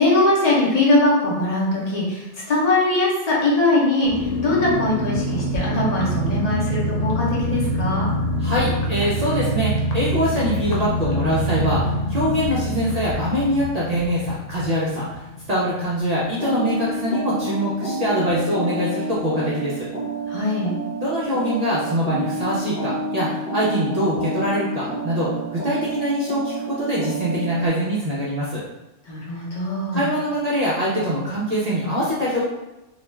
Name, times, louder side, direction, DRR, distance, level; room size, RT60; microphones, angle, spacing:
voice 1, 0.0-8.1 20.3-20.7 29.1-30.1, left 2 dB, 40° left, -5 dB, 0.7 m, -21 dB
sound 1, 4.0-16.4 16.7-16.8 17.0-17.3, equal, 90° left, 1.0 m, -25 dB
voice 2, 8.4-19.9 21.0-28.6 29.9-32.4, equal, 60° right, -7 dB, 0.4 m, -23 dB
sound 2, 16.4-27.7, right 2 dB, 5° right, 0.7 m, -29 dB
2.4 x 2.2 x 3.0 m, 1.0 s
omnidirectional pair, 1.3 m